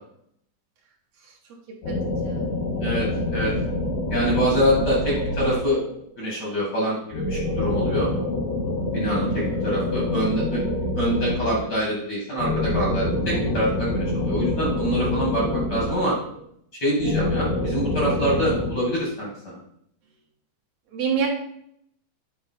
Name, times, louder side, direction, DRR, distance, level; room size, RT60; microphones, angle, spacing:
sound 1, 1.8-6.0 7.1-11.8 12.4-16.4 17.0-18.7, left 1 dB, 60° left, 2.5 m, -26 dB
voice 1, 2.8-3.5 4.1-5.8 6.2-8.1 8.9-10.6 10.9-16.1 16.8-19.6, equal, 85° left, -4 dB, 0.9 m, -25 dB
voice 2, 9.2-9.6 20.9-21.3, right 7 dB, 75° right, -2 dB, 1.6 m, -27 dB
9.5 x 4.2 x 4.2 m, 0.70 s
omnidirectional pair, 5.1 m